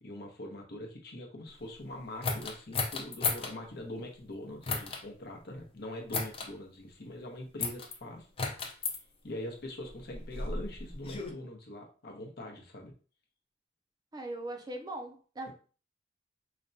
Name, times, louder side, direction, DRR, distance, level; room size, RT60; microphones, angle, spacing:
voice 1, 0.0-8.3 9.2-12.9 15.5-15.6, left 1 dB, 65° left, 0.8 m, -43 dB
sound 1, 2.2-3.5 4.6-5.0 6.1-6.5 7.6-7.9 8.4-9.0 9.9-11.3, left 4 dB, 30° left, 0.5 m, -34 dB
voice 2, 14.1-15.5, right 1 dB, 20° right, 0.5 m, -40 dB
5.0 x 2.1 x 2.6 m
head